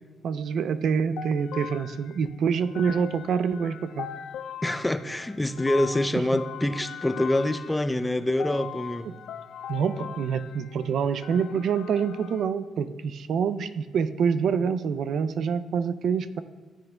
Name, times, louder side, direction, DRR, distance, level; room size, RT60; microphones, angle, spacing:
voice 1, 0.2-4.1 9.7-16.4, right 6 dB, 65° right, 12 dB, 0.4 m, -26 dB
sound 1, 1.2-12.4, left 8 dB, 75° left, 0.4 m, -41 dB
voice 2, 4.6-9.1, left 1 dB, 10° left, 11 dB, 0.4 m, -26 dB
14.0 x 7.8 x 2.3 m, 1.4 s
cardioid pair, 90°, 0 cm